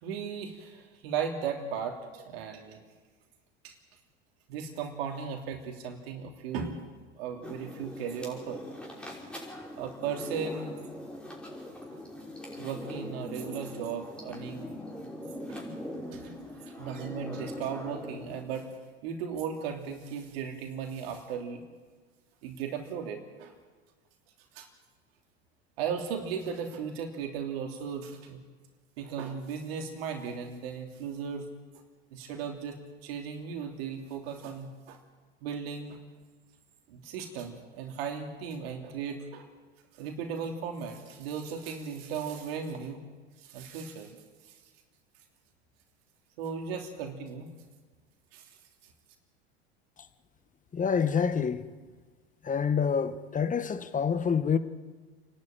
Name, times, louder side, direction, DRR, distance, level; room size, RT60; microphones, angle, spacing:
voice 1, 0.0-2.8 3.6-3.7 4.5-6.8 7.2-8.6 9.8-10.7 12.6-14.7 15.5-15.6 16.1-16.3 16.8-18.7 19.0-21.6 22.4-23.5 24.5-24.7 25.8-28.4 29.0-31.5 32.1-35.0 35.4-36.0 36.9-39.5 39.9-43.0 43.4-44.2 44.4-44.5 46.4-47.5 48.3-48.5, right 6 dB, 65° right, 3.1 m, -36 dB
sound 1, 7.4-18.4, left 1 dB, 5° left, 5.6 m, -41 dB
voice 2, 50.7-51.7 52.4-54.6, left 6 dB, 25° left, 1.5 m, -27 dB
29.0 x 11.5 x 9.2 m
hypercardioid pair, 80°, 32 cm